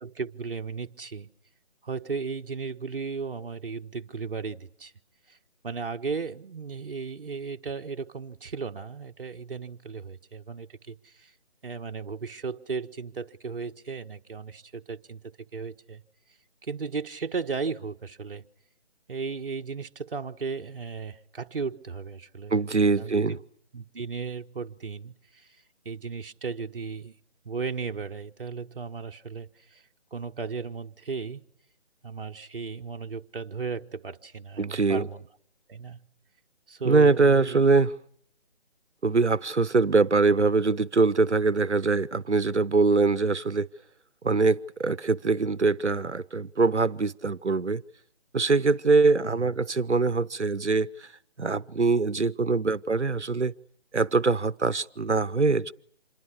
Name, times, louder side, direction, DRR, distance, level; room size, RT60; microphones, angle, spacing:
voice 1, 0.0-1.3 1.8-4.9 5.3-5.4 5.6-11.3 11.6-16.0 16.6-18.5 19.1-22.6 23.0-23.4 23.7-25.5 25.8-27.1 27.4-29.8 30.1-31.4 32.0-35.3 35.7-36.1 36.7-37.8 49.2-49.5, right 5 dB, 55° right, 1.4 m, -35 dB
voice 2, 22.5-23.4 34.6-35.1 36.8-37.9 39.0-43.7 44.2-47.8 48.3-51.1 51.4-53.5 53.9-55.7, right 3 dB, 90° right, 1.0 m, -23 dB
26.5 x 22.5 x 8.5 m
figure-of-eight pair, 155°, 34 cm